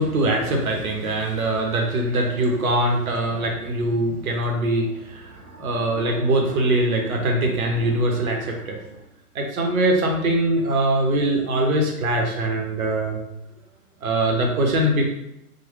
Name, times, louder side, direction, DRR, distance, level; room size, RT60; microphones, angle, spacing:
voice 1, 0.0-8.8 9.3-13.2 14.0-15.1, right 1 dB, 65° right, 1 dB, 0.8 m, -22 dB
3.0 x 2.2 x 3.1 m, 0.83 s
hypercardioid pair, 130°, 46 cm